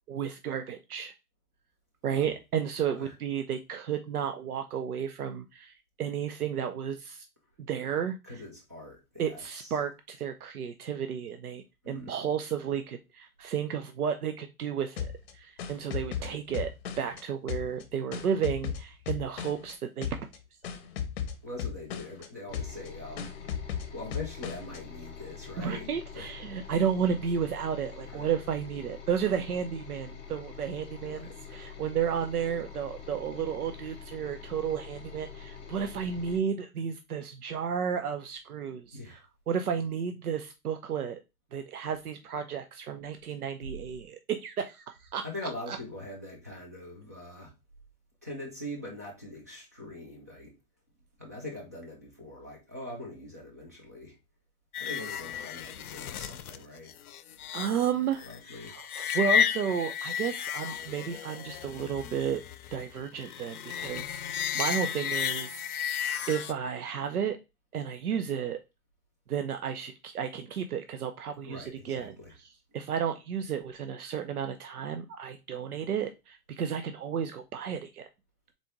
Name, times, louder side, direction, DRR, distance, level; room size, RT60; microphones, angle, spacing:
voice 1, 0.1-1.1 2.0-7.2 7.7-8.2 9.2-16.7 17.0-20.1 25.6-39.0 39.5-41.2 41.5-45.2 45.7-45.8 57.5-58.3 58.7-62.4 62.7-64.2 64.5-66.0 66.3-67.4 67.7-68.6 69.3-72.1 72.7-78.1, right 7 dB, 85° right, 0.7 m, -32 dB
voice 2, 8.2-9.8 11.8-12.1 16.1-16.4 21.4-23.3 23.9-26.3 28.1-28.3 31.0-31.6 38.9-39.2 45.2-47.5 48.2-50.5 51.2-54.2 54.8-57.0 58.2-58.8 71.5-72.3, left 1 dB, 15° right, 0.3 m, -43 dB
sound 1, 15.0-17.2 17.5-19.7 20.0-20.4 20.6-22.3 22.5-22.9 23.2-24.8, left 8 dB, 45° left, 0.8 m, -36 dB
sound 2, 22.5-36.4, left 7 dB, 15° left, 1.1 m, -45 dB
sound 3, 54.7-66.5, left 9 dB, 80° left, 0.6 m, -33 dB
4.1 x 3.5 x 3.0 m
hypercardioid pair, 135°, 43 cm